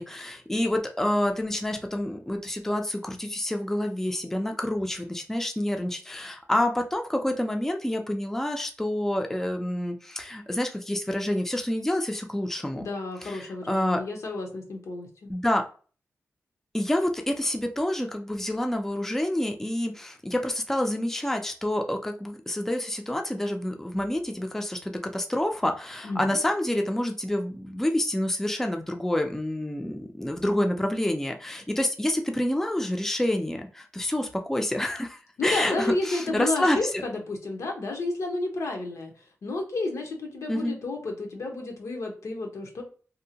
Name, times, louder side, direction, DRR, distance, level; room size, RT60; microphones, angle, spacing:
voice 1, 0.0-12.9 13.2-14.0 15.3-15.6 16.7-37.0 40.5-40.7, left 1 dB, 5° left, 4 dB, 0.3 m, -28 dB
voice 2, 12.8-15.3 26.0-26.4 35.4-39.1 39.4-42.8, left 2 dB, 85° left, 2 dB, 0.7 m, -31 dB
2.6 x 2.1 x 2.7 m, 0.38 s
wide cardioid pair, 90°, 5 cm